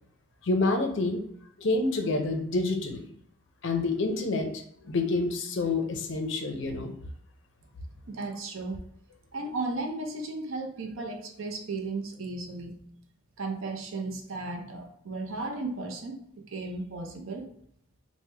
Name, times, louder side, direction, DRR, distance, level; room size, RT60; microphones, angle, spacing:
voice 1, 0.4-1.2 1.6-3.0 3.6-4.5 4.8-6.9, left 3 dB, 55° left, 4 dB, 0.5 m, -27 dB
voice 2, 8.1-8.8 9.3-12.9 13.4-16.2 16.5-17.5, right 3 dB, 70° right, 3 dB, 0.5 m, -35 dB
3.1 x 2.1 x 3.2 m, 0.69 s
head